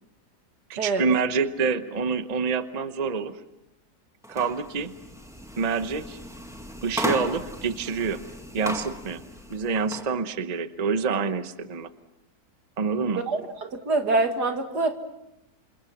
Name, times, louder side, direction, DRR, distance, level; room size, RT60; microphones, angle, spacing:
voice 1, 0.7-3.4 4.3-4.9 5.6-6.2 6.8-8.2 8.5-9.2 9.5-11.9 12.8-13.2, right 5 dB, 30° right, 10 dB, 0.9 m, -27 dB
sound 1, 4.2-10.1, equal, ahead, 1.8 m, -36 dB
voice 2, 13.3-15.0, right 3 dB, 75° right, 5 dB, 2.7 m, -25 dB
28.5 x 28.0 x 6.0 m, 0.91 s
omnidirectional pair, 1.8 m